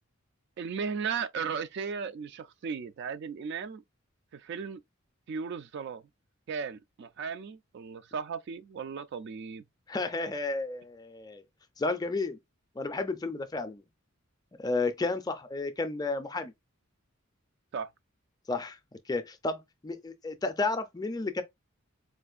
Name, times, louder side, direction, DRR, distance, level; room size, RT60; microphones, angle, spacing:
voice 1, 0.6-3.8 4.3-4.8 5.3-6.0 6.5-9.6 17.7-17.9, right 6 dB, 55° right, 0.3 m, -36 dB
voice 2, 9.9-11.4 11.8-12.4 12.8-13.8 14.6-16.5 18.5-18.8 19.1-21.4, left 3 dB, 20° left, 0.4 m, -32 dB
4.4 x 2.4 x 2.4 m
head